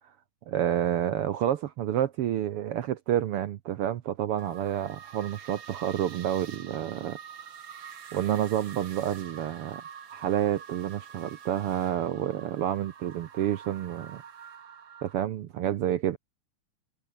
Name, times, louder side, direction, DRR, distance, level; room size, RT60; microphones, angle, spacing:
voice 1, 0.5-7.2 8.1-9.8 10.1-14.2 15.0-16.2, right 11 dB, 80° right, 1.3 m, -29 dB
sound 1, 4.4-15.1, right 8 dB, 45° right, 1.9 m, -46 dB
omnidirectional pair, 3.7 m